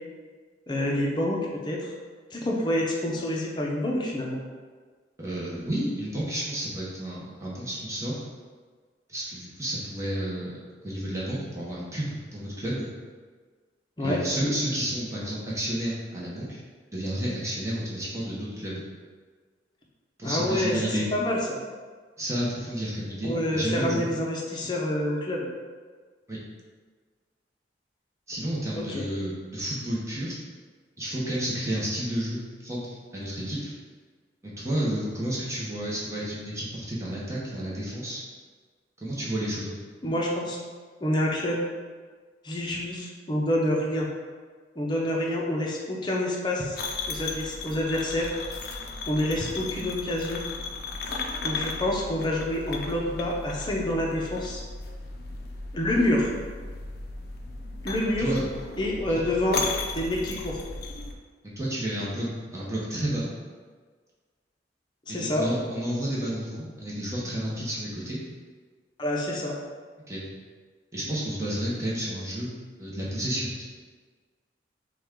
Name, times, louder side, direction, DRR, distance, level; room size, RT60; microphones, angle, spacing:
voice 1, 0.7-1.4 1.6-1.9 2.3-4.4 14.0-14.2 20.2-20.8 21.1-21.6 23.2-25.5 28.7-29.1 40.0-40.6 41.0-41.6 42.4-44.1 44.8-46.8 47.1-48.3 49.1-50.4 51.4-54.6 55.7-56.3 57.8-58.3 58.8-59.6 59.9-60.6 65.1-65.4 69.0-69.5, left 1 dB, 25° left, -3 dB, 0.7 m, -27 dB
voice 2, 5.2-8.2 9.1-10.6 10.8-12.9 14.0-16.6 16.9-18.8 20.2-21.1 22.2-24.0 26.3-26.4 28.3-30.4 31.0-33.7 34.4-38.2 39.0-39.7 58.2-58.4 59.1-59.2 61.4-63.3 65.1-68.2 70.1-70.3 70.9-72.5 72.8-73.6, right 1 dB, 15° right, -7 dB, 0.9 m, -31 dB
sound 1, 46.7-61.1, left 3 dB, 60° left, 0.5 m, -35 dB
5.9 x 2.4 x 3.7 m, 1.5 s
head